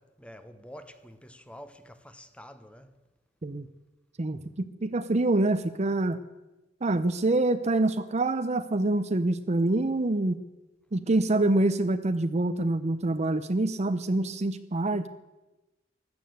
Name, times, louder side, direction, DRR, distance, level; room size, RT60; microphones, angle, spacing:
voice 1, 0.0-2.9, equal, 5° left, 1.0 m, -48 dB
voice 2, 4.2-6.2 6.8-10.4 10.9-15.1, right 2 dB, 35° right, 0.6 m, -26 dB
15.5 x 11.5 x 7.9 m
head